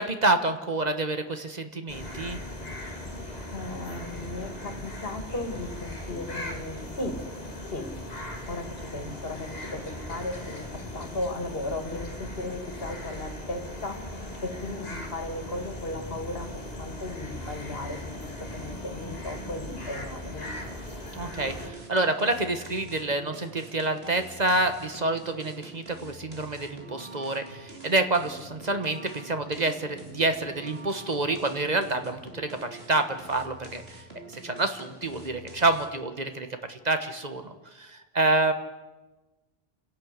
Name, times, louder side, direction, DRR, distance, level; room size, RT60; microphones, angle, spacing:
voice 1, 0.0-2.4 9.0-9.1 21.1-33.8 34.3-38.5, right 2 dB, 45° right, 8 dB, 1.4 m, -28 dB
sound 1, 1.9-21.7, left 1 dB, 40° left, 2.3 m, -38 dB
voice 2, 3.5-7.2 7.7-7.9 8.5-20.5, left 2 dB, 65° left, 6 dB, 2.5 m, -36 dB
sound 2, 21.3-36.1, right 2 dB, 75° right, 3.3 m, -46 dB
29.0 x 11.0 x 8.2 m, 1.2 s
omnidirectional pair, 1.0 m